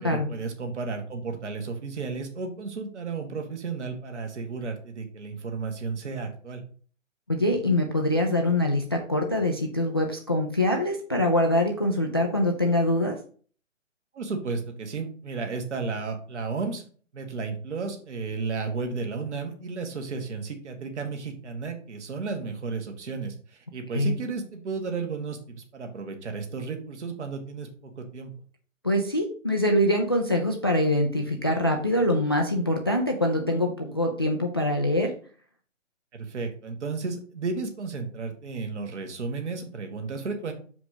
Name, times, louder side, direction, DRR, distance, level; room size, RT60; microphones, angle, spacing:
voice 1, 0.0-6.6 14.1-16.8 17.1-28.3 36.1-40.5, right 4 dB, 60° right, 4 dB, 2.0 m, -33 dB
voice 2, 7.3-13.2 23.9-24.1 28.8-35.1, left 1 dB, 20° left, 2 dB, 0.4 m, -24 dB
6.4 x 5.0 x 4.9 m, 0.43 s
figure-of-eight pair, 145°, 39 cm